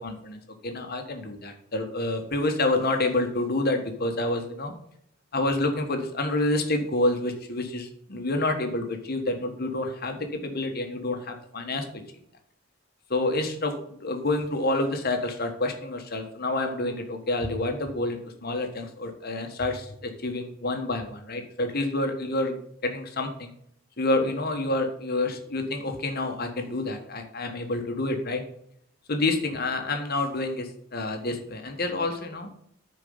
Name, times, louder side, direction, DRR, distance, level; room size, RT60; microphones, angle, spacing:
voice 1, 0.0-4.7 5.3-11.8 13.1-22.6 22.8-23.5 24.0-28.4 29.1-32.5, left 2 dB, 45° left, 5 dB, 1.4 m, -28 dB
9.9 x 4.6 x 5.5 m, 0.71 s
head